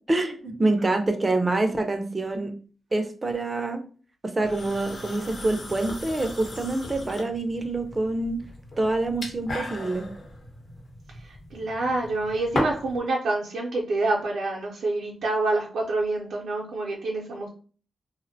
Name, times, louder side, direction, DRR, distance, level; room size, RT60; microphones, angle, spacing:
voice 1, 0.1-2.5 2.9-3.8 4.2-8.4 8.8-10.1, right 2 dB, 25° right, 5 dB, 0.4 m, -26 dB
sound 1, 4.4-13.0, left 1 dB, 55° left, 0.8 m, -36 dB
voice 2, 11.5-17.5, right 2 dB, 85° right, -4 dB, 0.5 m, -27 dB
2.5 x 2.1 x 2.6 m, 0.40 s
cardioid pair, 80°, 0 cm